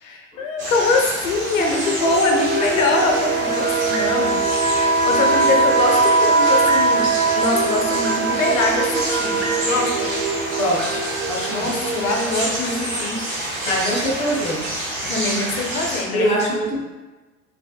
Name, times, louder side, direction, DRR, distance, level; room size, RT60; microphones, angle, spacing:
voice 1, 0.0-4.4 4.7-7.1 7.3-10.1 11.5-13.2 15.0-16.5, left 3 dB, 70° left, 2 dB, 0.5 m, -23 dB
sound 1, 0.6-16.0, right 1 dB, 70° right, 1.0 m, -28 dB
sound 2, 1.3-13.4, right 3 dB, 50° right, 0.5 m, -28 dB
sound 3, 1.5-11.2, right 3 dB, 85° right, 0.7 m, -22 dB
voice 2, 10.6-11.0 11.3-11.7 13.7-14.7 16.1-16.8, equal, 15° left, -3 dB, 0.4 m, -23 dB
2.2 x 2.0 x 2.7 m, 1.2 s
figure-of-eight pair, 75°, 42 cm